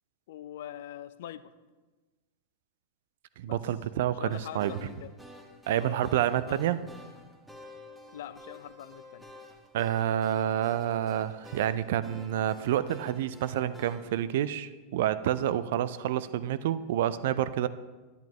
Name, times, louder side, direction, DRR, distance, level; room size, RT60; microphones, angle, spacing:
voice 1, 0.3-1.5 3.5-3.6 4.2-5.1 5.8-6.9 8.1-9.3, left 11 dB, 55° left, 15 dB, 0.4 m, -43 dB
voice 2, 3.4-4.7 5.7-6.8 9.7-17.7, right 11 dB, 55° right, 15 dB, 0.4 m, -28 dB
sound 1, 4.3-14.3, equal, 5° right, 1.1 m, -51 dB
10.5 x 10.5 x 3.0 m, 1.3 s
figure-of-eight pair, 90°, 0 cm